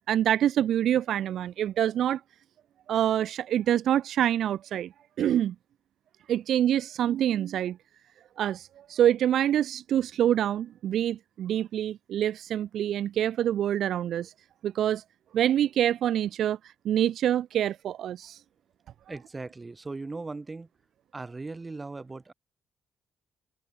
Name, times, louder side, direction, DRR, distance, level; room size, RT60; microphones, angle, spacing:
voice 1, 0.1-2.2 2.9-4.9 5.2-5.5 6.3-7.8 8.4-14.3 14.6-15.0 15.3-16.6 16.8-18.4, right 11 dB, 70° right, 0.9 m, -26 dB
voice 2, 19.1-20.7 21.1-22.3, right 3 dB, 25° right, 6.7 m, -38 dB
open air
cardioid pair, 90°, 0 cm